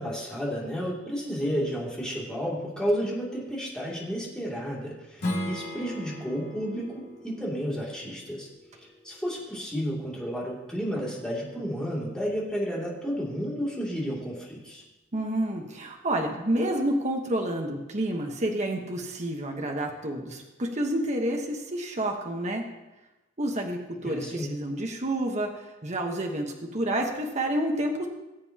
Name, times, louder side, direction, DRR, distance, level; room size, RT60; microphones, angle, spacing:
voice 1, 0.0-8.5 9.0-14.8 24.0-24.5, equal, 5° left, -5 dB, 2.6 m, -32 dB
Strum, 5.2-10.4, left 1 dB, 55° left, 2.7 m, -38 dB
voice 2, 15.1-22.6 23.4-25.5 25.8-28.1, right 1 dB, 35° right, 2 dB, 1.2 m, -29 dB
19.0 x 7.8 x 2.9 m, 1.0 s
head